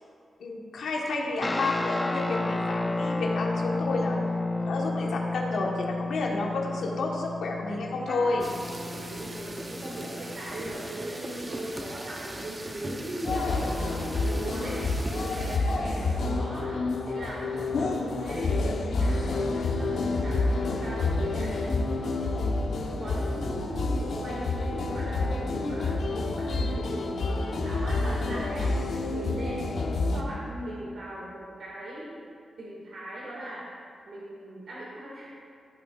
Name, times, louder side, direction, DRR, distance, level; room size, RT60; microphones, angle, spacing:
voice 1, 0.4-4.2 4.6-8.5, left 3 dB, 90° left, -1 dB, 1.3 m, -30 dB
sound 1, 1.4-11.1, left 2 dB, 15° left, 0.5 m, -32 dB
sound 2, 8.4-15.6, right 1 dB, 20° right, 0.7 m, -39 dB
voice 2, 8.8-13.8 14.2-14.8 15.1-16.8 17.1-18.6 19.0-21.5 21.9-22.4 23.0-28.8 29.1-29.8 30.1-32.2 32.6-33.7 34.1-35.3, right 1 dB, 65° right, -6 dB, 2.0 m, -39 dB
sound 3, 13.2-30.2, left 3 dB, 70° left, 0.9 m, -28 dB
15.0 x 8.5 x 2.5 m, 2.3 s
wide cardioid pair, 170°, 0 cm